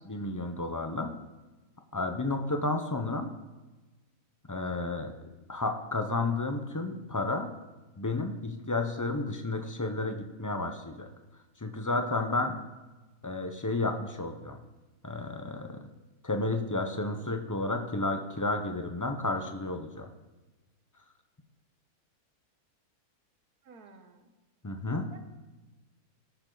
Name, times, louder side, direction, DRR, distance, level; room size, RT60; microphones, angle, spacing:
voice 1, 0.1-1.1 1.9-3.3 4.5-5.1 5.5-7.5 8.0-11.1 11.6-12.5 13.2-14.6 15.0-15.8 16.2-20.1 24.6-25.1, left 2 dB, 25° left, 5 dB, 0.4 m, -31 dB
voice 2, 23.6-24.3 25.1-25.2, right 4 dB, 75° right, 6 dB, 1.7 m, -52 dB
18.5 x 6.9 x 3.9 m, 1.2 s
omnidirectional pair, 1.6 m